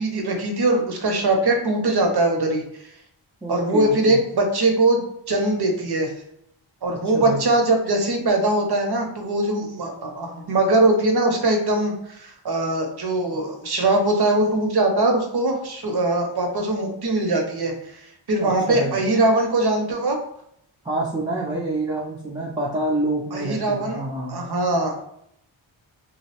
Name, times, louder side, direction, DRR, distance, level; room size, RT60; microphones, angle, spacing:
voice 1, 0.0-2.9 3.5-6.1 6.8-20.2 23.3-24.0 24.3-25.0, right 2 dB, 55° right, 3 dB, 0.6 m, -21 dB
voice 2, 3.4-4.2 6.9-7.4 18.4-19.0 20.8-24.4, right 2 dB, 10° right, -4 dB, 0.3 m, -27 dB
2.4 x 2.0 x 2.8 m, 0.73 s
wide cardioid pair, 55°, 49 cm